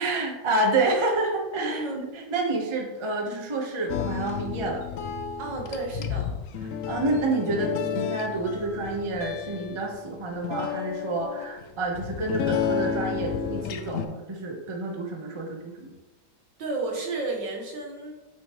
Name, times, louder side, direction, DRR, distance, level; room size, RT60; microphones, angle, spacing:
voice 1, 0.0-4.8 6.9-15.9, right 2 dB, 20° right, 0 dB, 0.8 m, -28 dB
voice 2, 1.6-2.0 5.4-6.4 16.6-18.1, right 3 dB, 75° right, 0 dB, 1.9 m, -32 dB
sound 1, 3.9-14.1, left 7 dB, 75° left, 0.7 m, -31 dB
8.2 x 5.1 x 3.0 m, 1.1 s
omnidirectional pair, 2.0 m